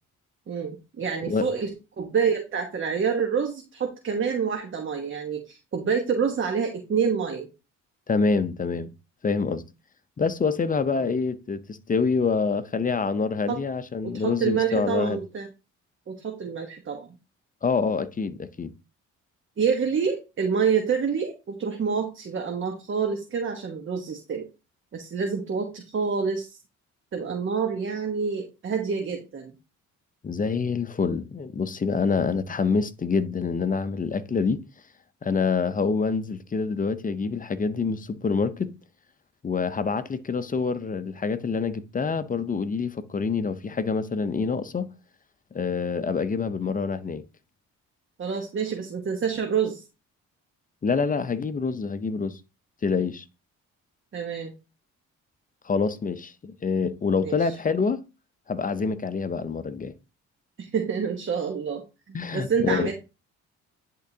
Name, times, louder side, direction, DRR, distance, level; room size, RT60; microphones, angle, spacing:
voice 1, 0.5-1.7 2.0-7.5 10.9-11.1 13.5-13.6 14.0-15.5 16.1-17.1 19.6-24.5 24.9-26.6 27.1-29.5 48.2-49.8 54.1-54.5 57.2-57.6 60.6-62.9, right 6 dB, 40° right, 1.1 m, -27 dB
voice 2, 8.1-8.9 9.2-9.6 10.2-15.2 17.6-18.7 30.2-34.6 35.2-38.7 39.4-44.9 45.5-47.2 50.8-52.4 52.8-53.2 55.6-58.0 58.5-59.9 62.1-62.9, left 5 dB, 30° left, 0.6 m, -26 dB
10.5 x 3.7 x 2.8 m
cardioid pair, 90°, 30 cm